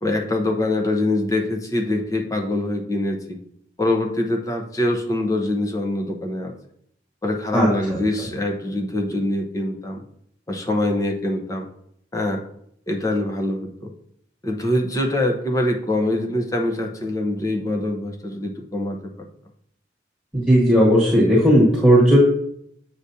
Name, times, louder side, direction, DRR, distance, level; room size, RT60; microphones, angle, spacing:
voice 1, 0.0-3.4 3.8-6.5 7.2-10.0 10.5-11.7 12.1-12.4 12.9-13.9 14.4-19.3, left 1 dB, 15° left, 2 dB, 0.8 m, -24 dB
voice 2, 7.5-8.0 20.3-22.2, equal, ahead, -6 dB, 1.5 m, -15 dB
8.0 x 4.9 x 2.8 m, 0.69 s
head